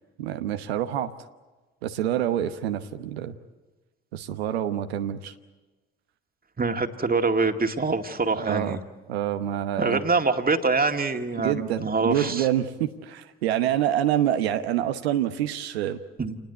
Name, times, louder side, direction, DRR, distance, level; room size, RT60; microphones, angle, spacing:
voice 1, 0.2-1.1 1.8-3.3 4.1-5.3 8.4-8.8 9.1-10.0 11.4-16.0, right 11 dB, 85° right, 8 dB, 1.0 m, -26 dB
voice 2, 6.6-8.8 9.8-12.5 16.2-16.4, right 4 dB, 30° right, 5 dB, 2.1 m, -25 dB
28.0 x 19.5 x 8.2 m, 1.2 s
hypercardioid pair, 45°, 30 cm